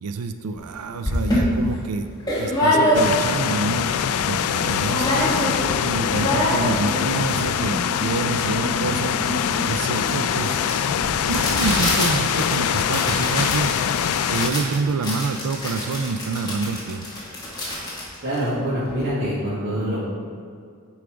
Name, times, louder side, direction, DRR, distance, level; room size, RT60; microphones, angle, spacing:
voice 1, 0.0-3.9 4.2-5.3 5.8-9.2 9.6-13.8 14.3-17.1, right 4 dB, 90° right, 8 dB, 0.4 m, -27 dB
sound 1, 0.6-0.7 1.0-3.4 3.8-3.9 4.1-4.6 4.9-5.7 6.0-19.0, left 1 dB, 20° left, 2.1 m, -26 dB
sound 2, 2.9-14.5, left 8 dB, 80° left, 0.3 m, -23 dB
voice 2, 18.2-20.0, equal, 55° right, -11 dB, 2.0 m, -25 dB
10.0 x 4.8 x 5.0 m, 2.2 s
head